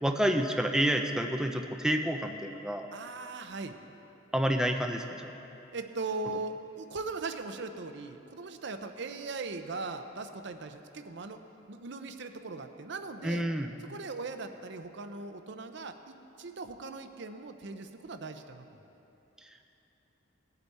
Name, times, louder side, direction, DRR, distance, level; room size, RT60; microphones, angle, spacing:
voice 1, 0.0-2.9 4.3-5.3 13.2-13.7 19.4-19.5, equal, 5° right, 4 dB, 0.4 m, -29 dB
voice 2, 2.9-3.8 5.7-11.4 11.7-13.4 13.9-18.8, right 3 dB, 65° right, 8 dB, 0.6 m, -39 dB
18.5 x 8.0 x 4.2 m, 2.9 s
head